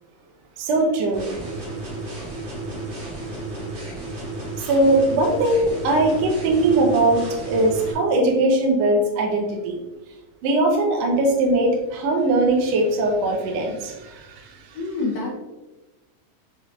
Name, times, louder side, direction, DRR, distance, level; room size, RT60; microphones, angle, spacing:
voice 1, 0.6-1.3 2.7-2.8 4.7-9.8 10.4-14.6, right 2 dB, 75° right, 0 dB, 1.6 m, -20 dB
sound 1, 1.1-7.9, right 2 dB, 55° right, 1.5 m, -33 dB
voice 2, 14.7-15.3, left 3 dB, 80° left, -2 dB, 1.6 m, -26 dB
5.9 x 2.4 x 3.1 m, 1.1 s
omnidirectional pair, 3.6 m